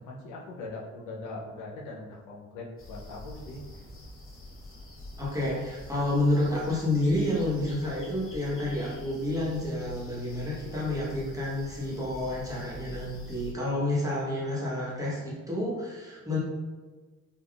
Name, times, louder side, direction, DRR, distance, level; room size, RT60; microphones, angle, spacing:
voice 1, 0.1-3.6, left 2 dB, 85° left, -2 dB, 0.6 m, -41 dB
sound 1, 2.8-13.5, left 1 dB, 45° left, 0.8 m, -46 dB
voice 2, 5.2-16.4, left 1 dB, 10° right, -7 dB, 1.0 m, -29 dB
3.4 x 2.3 x 2.4 m, 1.3 s
cardioid pair, 90°, 30 cm